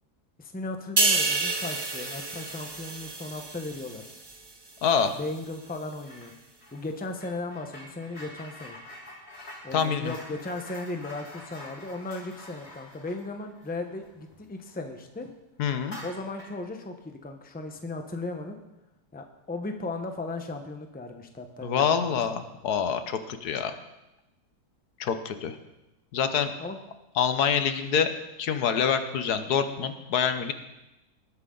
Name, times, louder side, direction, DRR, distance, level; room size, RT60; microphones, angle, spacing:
voice 1, 0.4-4.1 5.1-6.3 6.7-8.8 9.6-15.3 16.0-18.6 19.1-22.2 26.6-26.8, left 2 dB, 5° left, 5 dB, 0.8 m, -36 dB
sound 1, 1.0-4.5 4.9-5.1, right 3 dB, 20° right, 0.8 m, -29 dB
voice 2, 4.8-5.1 9.7-10.1 15.6-16.0 21.6-23.7 25.0-25.6 26.1-26.5 27.2-28.1 28.4-30.5, left 7 dB, 75° left, 9 dB, 1.4 m, -26 dB
sound 2, 6.0-6.3 6.6-14.8 15.1-15.3 15.8-16.6, left 1 dB, 40° left, 3.2 m, -46 dB
19.0 x 9.4 x 3.9 m, 0.97 s
omnidirectional pair, 1.7 m